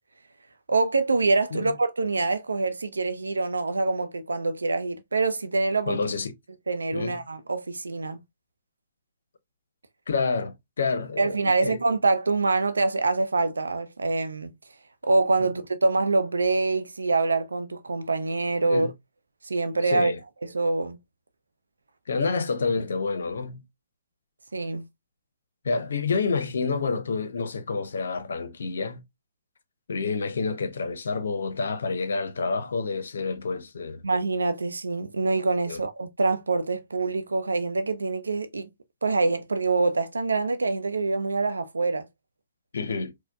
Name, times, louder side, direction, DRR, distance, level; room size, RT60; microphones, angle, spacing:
voice 1, 0.7-6.0 6.7-8.2 11.2-14.5 15.0-18.9 19.4-20.1 20.4-21.0 24.5-24.8 34.0-38.7 39.0-42.1, right 3 dB, 80° right, 0.5 m, -25 dB
voice 2, 5.9-6.3 6.9-7.2 10.1-11.8 15.4-15.5 18.7-18.9 19.8-20.2 22.1-23.6 25.6-29.0 29.9-34.0 35.7-35.8 42.7-43.1, left 4 dB, 70° left, 0.6 m, -28 dB
4.3 x 2.1 x 2.2 m
figure-of-eight pair, 125°, 0 cm